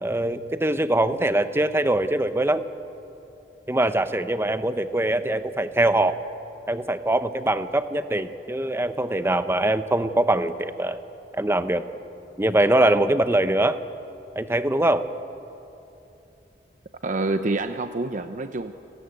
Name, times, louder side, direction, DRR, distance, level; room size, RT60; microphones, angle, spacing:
voice 1, 0.0-2.6 3.7-6.2 6.7-11.0 11.3-11.8 12.4-13.8 14.4-15.0, right 1 dB, 15° right, 11 dB, 0.8 m, -22 dB
voice 2, 17.0-18.7, right 2 dB, 45° right, 9 dB, 0.7 m, -27 dB
29.0 x 16.5 x 9.1 m, 2.9 s
head